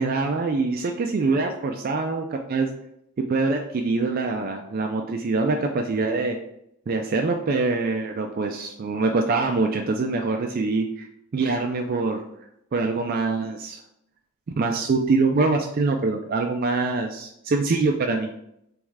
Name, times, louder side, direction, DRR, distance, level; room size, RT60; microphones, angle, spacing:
voice 1, 0.0-2.7 3.2-6.4 6.9-11.1 11.3-12.2 12.7-13.8 14.6-18.3, right 3 dB, 40° right, 3 dB, 0.3 m, -24 dB
3.5 x 3.1 x 4.6 m, 0.77 s
head